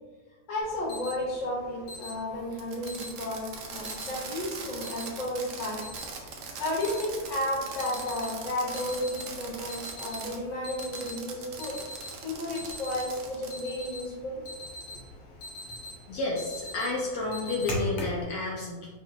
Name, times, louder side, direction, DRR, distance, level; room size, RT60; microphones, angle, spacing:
voice 1, 0.5-5.9 6.2-6.3 6.6-11.8 12.2-14.4, left 1 dB, 35° left, -4 dB, 0.9 m, -33 dB
Alarm, 0.6-18.2, left 1 dB, 85° left, 1.3 m, -43 dB
Fireworks, 2.5-10.4 10.8-13.7, right 5 dB, 65° right, 0.9 m, -41 dB
voice 2, 16.1-18.9, left 2 dB, 70° left, -4 dB, 1.0 m, -31 dB
4.9 x 2.5 x 2.6 m, 1.3 s
omnidirectional pair, 1.6 m